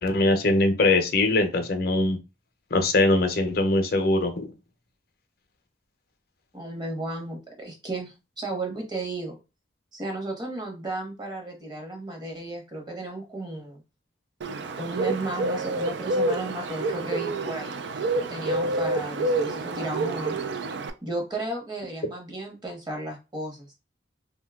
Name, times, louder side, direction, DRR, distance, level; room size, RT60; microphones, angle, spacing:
voice 1, 0.0-2.2 2.7-4.5, left 2 dB, 55° left, 6 dB, 0.6 m, -22 dB
voice 2, 6.5-9.4 9.9-13.8 14.8-17.7 18.2-20.6 21.0-23.8, right 2 dB, 25° right, 1 dB, 0.9 m, -34 dB
Bird, 14.4-20.9, right 2 dB, 65° right, 0.4 m, -28 dB
2.6 x 2.2 x 3.4 m, 0.28 s
head